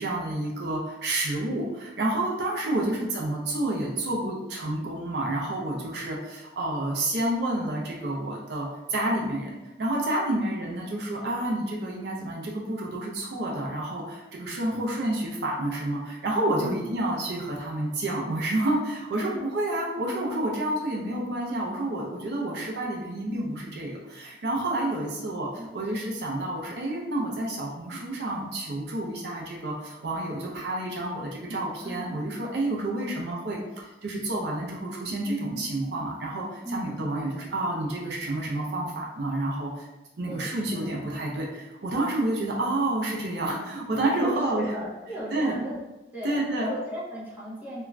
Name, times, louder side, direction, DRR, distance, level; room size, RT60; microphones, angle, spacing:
voice 1, 0.0-25.5 25.7-39.9 40.2-44.7 45.3-45.6 46.2-46.7, right 1 dB, 65° right, -2 dB, 0.5 m, -29 dB
voice 2, 2.7-3.1 10.3-10.5 16.6-16.9 19.1-19.6 25.6-26.0 31.8-32.2 32.6-33.4 36.6-37.0 40.3-40.9 44.2-45.8 46.1-47.8, right 1 dB, 10° right, -8 dB, 0.6 m, -37 dB
2.4 x 2.2 x 3.1 m, 1.0 s
head